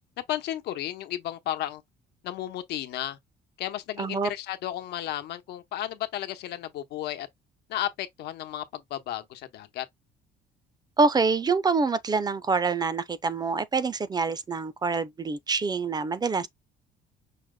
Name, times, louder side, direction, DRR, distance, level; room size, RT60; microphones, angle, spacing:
voice 1, 0.2-1.8 2.2-3.2 3.6-7.3 7.7-9.8 16.4-16.5, left 13 dB, 80° left, 1.0 m, -33 dB
voice 2, 4.0-4.3 11.0-16.5, right 4 dB, 25° right, 0.5 m, -26 dB
5.7 x 2.1 x 3.8 m
cardioid pair, 110°, 17 cm